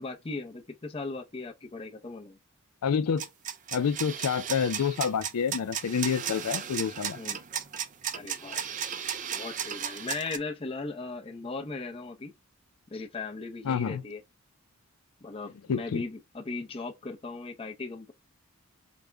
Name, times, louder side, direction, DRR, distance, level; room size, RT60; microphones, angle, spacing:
voice 1, 0.0-2.4 7.1-7.4 8.1-8.6 9.3-12.3 12.9-14.2 15.2-18.1, left 3 dB, 25° left, 0.6 m, -38 dB
voice 2, 2.8-3.3 3.7-7.2 13.6-14.0 15.7-16.0, left 6 dB, 85° left, 0.4 m, -28 dB
sound 1, 3.2-10.4, right 8 dB, 35° right, 0.3 m, -35 dB
5.0 x 2.2 x 3.3 m
head